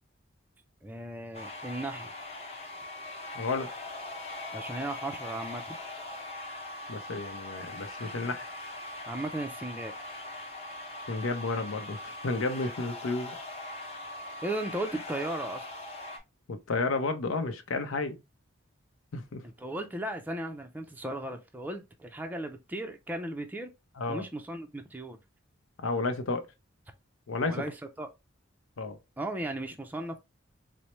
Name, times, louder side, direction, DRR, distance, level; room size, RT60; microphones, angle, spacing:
voice 1, 0.8-2.1 4.5-5.8 9.1-9.9 14.4-15.7 19.4-23.7 24.1-25.2 27.5-28.1 29.2-30.2, right 1 dB, 10° right, 0.4 m, -36 dB
sound 1, 1.3-16.2, left 2 dB, 30° left, 0.8 m, -41 dB
voice 2, 3.3-3.7 6.9-8.4 11.1-13.3 16.5-18.2 19.1-19.4 24.0-24.2 25.8-26.5 27.3-27.7 28.8-29.0, left 3 dB, 85° left, 0.6 m, -32 dB
4.1 x 2.0 x 3.1 m
head